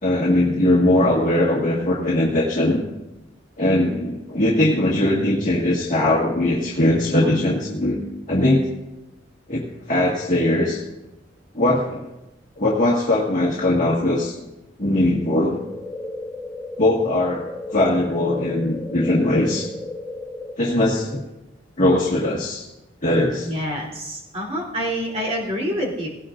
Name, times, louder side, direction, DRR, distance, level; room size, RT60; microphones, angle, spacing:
voice 1, 0.0-2.8 3.6-8.7 9.5-10.8 11.5-12.1 12.6-14.4 14.8-15.6 16.8-19.7 20.6-21.2 21.8-22.6 23.0-23.5, left 1 dB, 45° left, -5 dB, 1.8 m, -20 dB
sound 1, 15.5-20.5, left 2 dB, ahead, 2.4 m, -34 dB
voice 2, 23.5-26.1, equal, 35° right, -2 dB, 3.3 m, -27 dB
18.5 x 17.5 x 2.6 m, 0.98 s
head